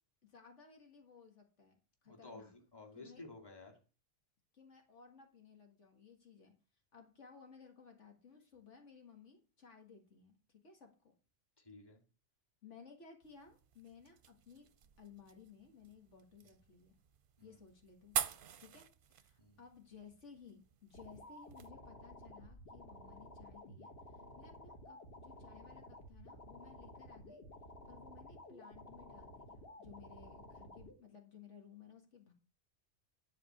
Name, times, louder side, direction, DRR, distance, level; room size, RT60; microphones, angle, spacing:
voice 1, 0.2-1.8 2.0-2.5 3.0-3.3 4.5-6.5 6.9-11.1 12.6-14.7 15.0-17.0 17.4-18.2 18.6-27.4 27.9-32.3, left 6 dB, 75° left, 3 dB, 2.3 m, -59 dB
voice 2, 2.1-3.8 11.6-12.0 17.4-17.6 19.4-19.6, left 2 dB, 20° left, 2 dB, 2.3 m, -54 dB
sound 1, 13.2-21.7, right 8 dB, 55° right, 0.8 m, -46 dB
sound 2, 20.9-30.9, left 1 dB, 55° left, 1.8 m, -54 dB
11.5 x 4.3 x 7.8 m, 0.36 s
omnidirectional pair, 1.2 m